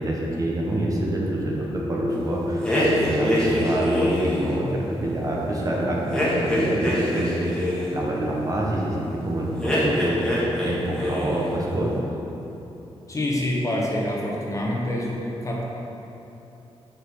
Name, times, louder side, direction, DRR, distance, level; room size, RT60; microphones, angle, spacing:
voice 1, 0.0-10.3 10.6-12.0, right 1 dB, 35° right, -3 dB, 1.1 m, -26 dB
sound 1, 1.5-5.2, left 2 dB, 55° left, 1.8 m, -33 dB
sound 2, 2.6-4.5 6.1-7.9 9.6-10.7 11.0-11.5, left 1 dB, 5° left, 1.6 m, -24 dB
voice 2, 13.1-15.7, left 1 dB, 30° left, -3 dB, 1.1 m, -26 dB
6.8 x 5.8 x 4.7 m, 3.0 s
wide cardioid pair, 125°, 11 cm